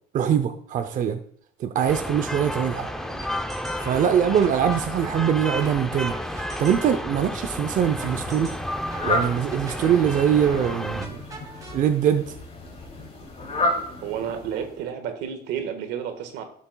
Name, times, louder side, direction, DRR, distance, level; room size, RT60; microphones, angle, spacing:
voice 1, 0.1-1.2 1.6-2.9 3.8-6.2 6.6-8.5 9.0-11.2 11.7-12.2, right 8 dB, 50° right, 8 dB, 0.6 m, -22 dB
sound 1, 1.9-11.1, equal, 5° left, 0.6 m, -32 dB
sound 2, 2.9-11.8, right 2 dB, 20° right, 3.1 m, -43 dB
Fowl, 7.5-14.9, left 1 dB, 40° left, 2.8 m, -32 dB
voice 2, 14.0-16.4, right 8 dB, 85° right, 7 dB, 1.5 m, -31 dB
12.5 x 7.1 x 2.3 m, 0.62 s
cardioid pair, 110°, 17 cm